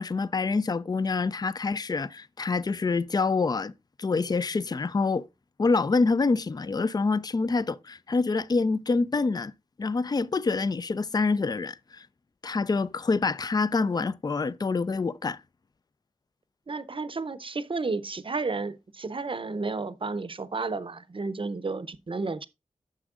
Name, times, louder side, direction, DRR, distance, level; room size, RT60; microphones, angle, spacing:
voice 1, 0.0-3.7 4.0-5.3 5.6-9.5 9.8-12.0 12.4-15.4, left 4 dB, 30° left, 0.4 m, -26 dB
voice 2, 16.7-22.5, right 3 dB, 40° right, 0.6 m, -32 dB
9.6 x 7.1 x 2.4 m
wide cardioid pair, 55°, 13 cm